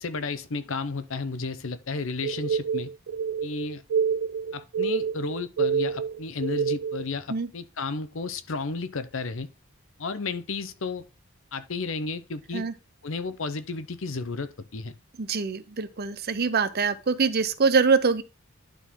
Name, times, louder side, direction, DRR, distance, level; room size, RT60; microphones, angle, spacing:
voice 1, 0.0-2.9 3.4-3.8 4.5-9.5 10.0-11.0 11.5-12.6 13.0-14.9, left 4 dB, 65° left, 0.8 m, -32 dB
sound 1, 2.2-7.1, right 6 dB, 80° right, 0.4 m, -27 dB
voice 2, 15.2-18.2, right 5 dB, 50° right, 0.7 m, -24 dB
11.5 x 3.9 x 3.7 m
head